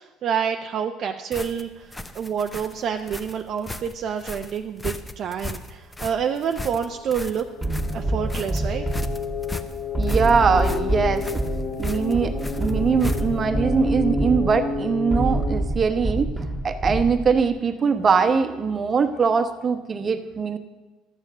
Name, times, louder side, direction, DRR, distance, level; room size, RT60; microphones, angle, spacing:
voice 1, 0.0-7.5 7.9-8.9, right 7 dB, 50° right, 5 dB, 0.6 m, -28 dB
sound 1, 1.3-13.5, left 2 dB, 15° left, 0.7 m, -36 dB
sound 2, 6.3-15.6, left 4 dB, 65° left, 1.7 m, -31 dB
sound 3, 7.6-17.5, right 1 dB, 10° right, 1.7 m, -27 dB
voice 2, 10.0-11.3 11.8-16.3 16.6-20.6, right 5 dB, 35° right, 9 dB, 0.9 m, -22 dB
12.5 x 7.3 x 6.6 m, 1.2 s
supercardioid pair, 100°, 0 cm